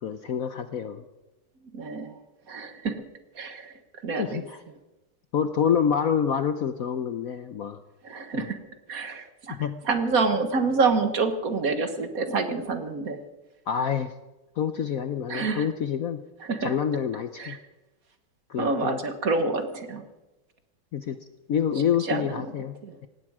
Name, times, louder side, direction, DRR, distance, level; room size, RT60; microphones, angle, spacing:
voice 1, 0.0-1.0 4.2-4.6 5.3-7.8 8.3-8.5 9.5-9.8 13.7-14.1 14.6-16.2 16.6-17.6 18.5-19.0 20.9-21.2 21.5-22.8, left 8 dB, 60° left, 10 dB, 1.0 m, -27 dB
voice 2, 1.7-2.2 2.5-3.0 3.3-3.7 4.0-4.4 8.0-8.6 8.9-9.6 9.8-13.2 15.3-15.7 16.4-16.7 17.4-17.6 18.6-20.0 22.0-22.5 22.8-22.9, right 4 dB, 50° right, 8 dB, 1.7 m, -27 dB
18.0 x 16.5 x 4.9 m, 1.1 s
omnidirectional pair, 2.1 m